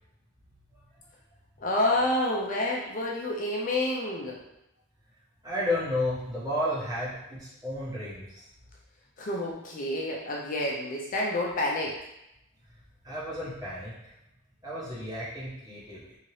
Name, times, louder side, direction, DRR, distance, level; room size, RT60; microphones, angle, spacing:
voice 1, 1.6-4.4 9.2-12.0, left 1 dB, 40° left, -2 dB, 0.4 m, -28 dB
voice 2, 5.4-8.5 13.0-14.1 14.6-16.2, left 1 dB, 15° right, -8 dB, 0.9 m, -32 dB
2.8 x 2.7 x 3.0 m, 0.86 s
head